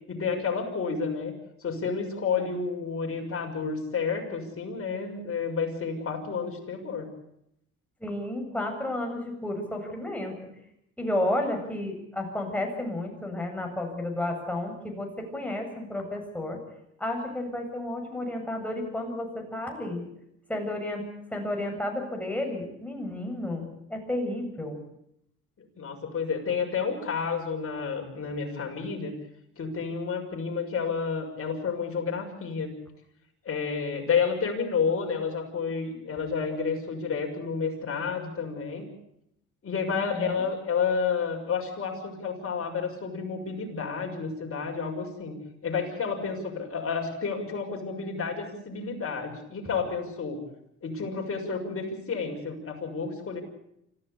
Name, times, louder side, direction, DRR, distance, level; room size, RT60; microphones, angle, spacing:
voice 1, 0.1-1.3 1.6-7.1 25.8-29.1 29.6-32.7 33.4-38.9 39.6-45.4 45.6-50.4 50.8-53.4, left 5 dB, 45° left, 1 dB, 6.6 m, -30 dB
voice 2, 8.0-10.3 11.0-16.6 17.0-20.0 20.5-21.0 21.3-24.8 39.9-40.4, left 1 dB, 5° left, 2 dB, 7.6 m, -32 dB
25.5 x 15.5 x 8.3 m, 0.78 s
cardioid pair, 90°, 30 cm